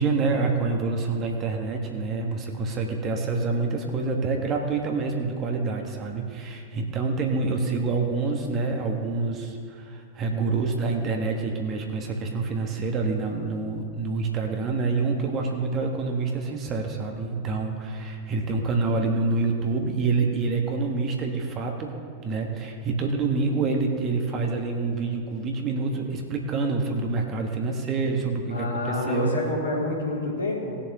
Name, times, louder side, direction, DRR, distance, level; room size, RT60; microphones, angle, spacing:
voice 1, 0.0-21.9 22.2-29.3, right 4 dB, 30° right, 2 dB, 1.6 m, -27 dB
voice 2, 28.5-30.8, left 2 dB, 85° left, -6 dB, 3.1 m, -28 dB
19.0 x 7.1 x 3.1 m, 2.3 s
figure-of-eight pair, 90°, 0 cm